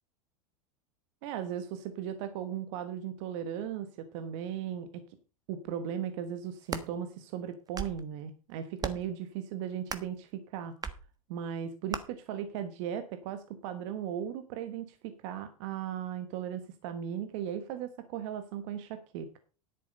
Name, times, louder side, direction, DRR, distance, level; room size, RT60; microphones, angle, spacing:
voice 1, 1.2-5.0 5.5-10.7 11.3-19.3, right 9 dB, 60° right, 9 dB, 1.4 m, -37 dB
sound 1, 6.4-6.9 7.5-8.0 8.8-9.1 9.9-10.2 10.8-11.0 11.9-12.0, right 5 dB, 20° right, 1.3 m, -37 dB
10.5 x 8.4 x 5.3 m, 0.34 s
hypercardioid pair, 100°, 18 cm